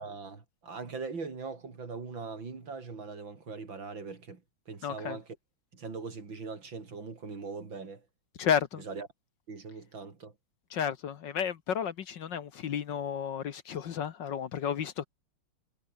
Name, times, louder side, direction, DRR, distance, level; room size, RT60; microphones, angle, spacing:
voice 1, 0.0-5.4 5.7-8.1 8.8-9.1 9.5-10.3, right 4 dB, 60° right, 4.1 m, -41 dB
voice 2, 4.8-5.2 8.4-8.8 10.7-15.1, left 8 dB, 60° left, 1.7 m, -32 dB
omnidirectional pair, 2.3 m